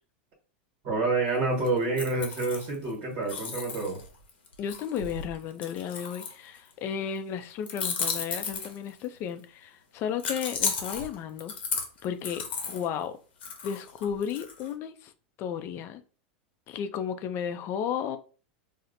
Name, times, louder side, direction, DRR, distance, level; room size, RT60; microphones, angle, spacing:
voice 1, 0.8-4.0, right 3 dB, 55° right, 1.3 m, -28 dB
sound 1, 1.6-2.9 3.3-6.7 7.7-9.1 10.2-12.9 13.4-14.7, left 5 dB, 90° left, 0.9 m, -34 dB
voice 2, 4.6-11.5 12.0-13.2 13.6-15.1 15.4-16.0 16.7-18.2, left 8 dB, 45° left, 0.4 m, -33 dB
4.2 x 2.1 x 2.6 m
hypercardioid pair, 115°, 6 cm